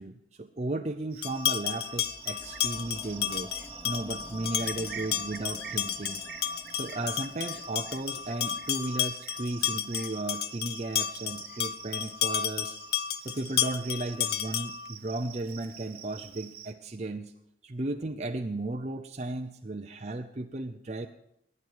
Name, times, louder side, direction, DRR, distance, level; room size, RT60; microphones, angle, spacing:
voice 1, 0.0-3.6 3.8-6.2 6.7-12.8 13.2-17.3 17.6-21.1, right 2 dB, 40° right, 4 dB, 0.6 m, -35 dB
Cricket, 1.1-16.7, right 8 dB, 55° right, 1.0 m, -47 dB
sound 1, 1.2-14.9, left 10 dB, 60° left, 0.6 m, -32 dB
sound 2, 1.8-12.0 12.2-12.3, equal, 5° left, 0.8 m, -52 dB
18.0 x 10.5 x 4.8 m, 0.75 s
head